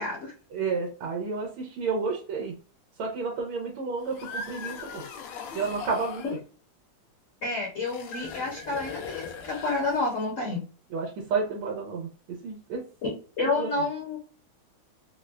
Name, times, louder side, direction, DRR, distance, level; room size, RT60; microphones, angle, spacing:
voice 1, 0.0-0.3 6.2-6.3 7.4-10.6 13.0-13.1 13.4-14.2, left 3 dB, 55° left, -2 dB, 0.9 m, -29 dB
voice 2, 0.5-2.5 3.0-5.0 5.5-6.2 10.9-12.8 13.4-13.8, right 4 dB, 85° right, 0 dB, 1.6 m, -31 dB
sound 1, 4.0-6.4 7.8-10.2, left 5 dB, 90° left, 1.5 m, -39 dB
4.3 x 2.1 x 2.3 m, 0.38 s
omnidirectional pair, 2.3 m